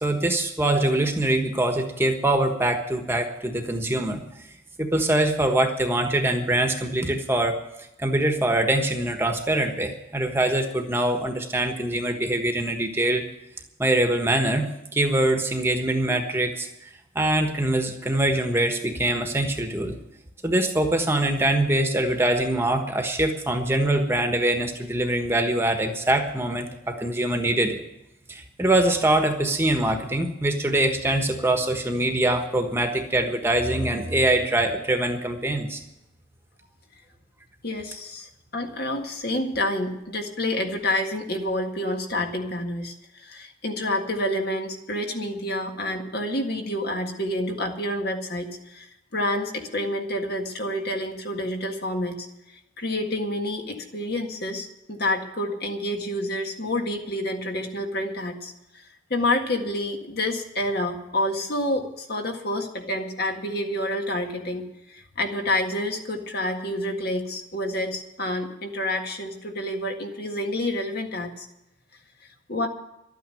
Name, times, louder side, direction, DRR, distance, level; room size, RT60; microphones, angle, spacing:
voice 1, 0.0-4.2 4.8-7.6 8.0-13.2 13.8-16.7 17.1-19.9 20.4-27.8 28.3-35.8, right 1 dB, 10° right, 5 dB, 1.3 m, -23 dB
voice 2, 37.6-52.3 52.8-58.8 59.1-64.6 64.9-71.5 72.5-72.7, left 1 dB, 55° left, 3 dB, 1.8 m, -28 dB
12.5 x 9.3 x 9.3 m, 0.88 s
head